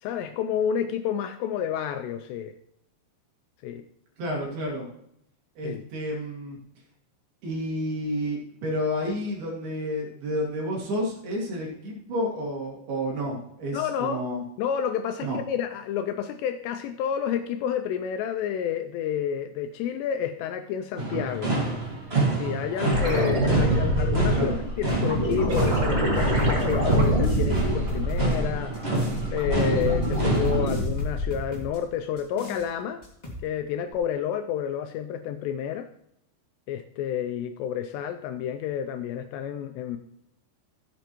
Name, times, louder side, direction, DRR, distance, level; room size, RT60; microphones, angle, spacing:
voice 1, 0.0-2.5 3.6-3.8 5.6-5.8 13.7-14.2 14.6-21.5 22.3-28.8 29.3-33.0 33.4-35.9 36.7-40.0, left 9 dB, 85° left, 7 dB, 2.5 m, -30 dB
voice 2, 4.2-4.9 5.6-6.6 7.4-14.4 15.2-15.4 24.3-24.6, equal, 60° right, -2 dB, 3.9 m, -30 dB
sound 1, 21.0-30.6, right 3 dB, 80° right, 0.5 m, -28 dB
sound 2, 22.8-28.6 29.0-31.5 33.9-34.0, equal, 25° right, 1.5 m, -25 dB
sound 3, 24.8-25.8 26.2-29.2 29.6-31.8 32.2-32.7 33.0-33.4, left 1 dB, 35° left, 0.6 m, -39 dB
15.5 x 7.9 x 3.0 m, 0.74 s
omnidirectional pair, 5.2 m